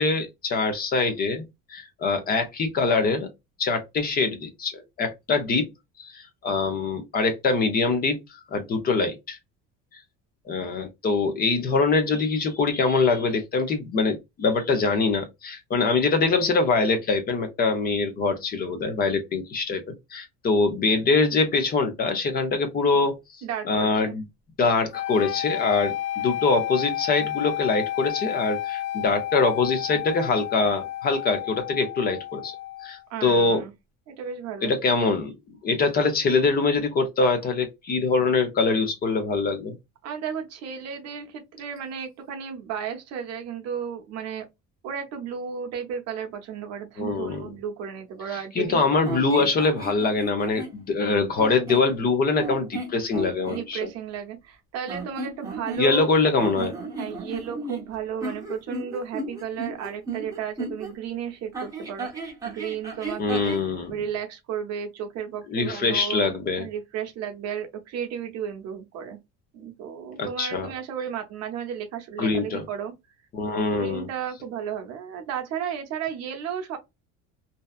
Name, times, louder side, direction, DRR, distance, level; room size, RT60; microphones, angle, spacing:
voice 1, 0.0-3.3 3.6-5.7 6.0-8.2 8.5-9.4 10.5-23.2 23.7-24.2 24.6-32.5 32.8-33.6 34.6-35.3 35.6-39.8 47.0-47.5 48.6-53.9 55.8-56.7 63.2-63.9 65.5-66.7 70.2-70.7 72.2-72.6 73.3-74.1, left 4 dB, 30° left, 0.5 m, -24 dB
voice 2, 23.4-24.2 33.1-33.7 34.1-34.7 40.0-44.5 44.8-48.8 49.3-49.5 53.5-56.1 57.0-63.5 63.9-66.3 66.6-69.2 69.5-72.9 73.5-76.8, right 8 dB, 50° right, 0.7 m, -33 dB
sound 1, 24.9-33.0, left 13 dB, 75° left, 0.6 m, -31 dB
sound 2, 49.0-50.8 51.3-51.9 52.4-53.6 54.8-56.1 56.4-60.9 61.5-63.7, right 3 dB, 10° right, 0.7 m, -34 dB
2.6 x 2.2 x 2.3 m
cardioid pair, 175°, 33 cm